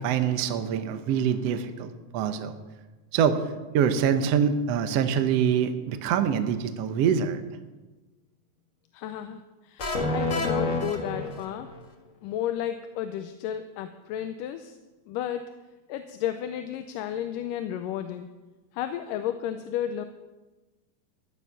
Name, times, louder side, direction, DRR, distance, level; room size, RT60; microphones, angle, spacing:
voice 1, 0.0-2.6 3.1-7.4, right 7 dB, 75° right, 9 dB, 1.5 m, -25 dB
voice 2, 8.9-11.7 12.2-14.8 15.1-15.5 15.9-18.3 18.7-20.1, left 10 dB, 80° left, 8 dB, 2.2 m, -33 dB
sound 1, 9.8-11.8, left 2 dB, 60° left, 0.8 m, -28 dB
15.5 x 11.0 x 5.7 m, 1.2 s
omnidirectional pair, 3.9 m